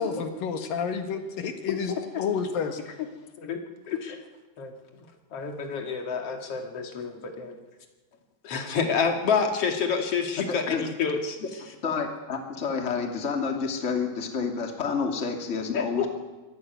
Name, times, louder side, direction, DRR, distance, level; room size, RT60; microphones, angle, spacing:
voice 1, 0.0-2.8, left 6 dB, 75° left, 6 dB, 3.4 m, -30 dB
voice 2, 1.7-2.2 3.4-3.6 3.9-4.2 4.6-4.7 5.3-7.6 8.4-11.4 15.7-16.1, left 6 dB, 45° left, 4 dB, 3.0 m, -28 dB
voice 3, 10.4-10.9 11.8-16.1, left 5 dB, 20° left, 3 dB, 2.4 m, -29 dB
25.0 x 15.5 x 9.5 m, 1.2 s
omnidirectional pair, 4.1 m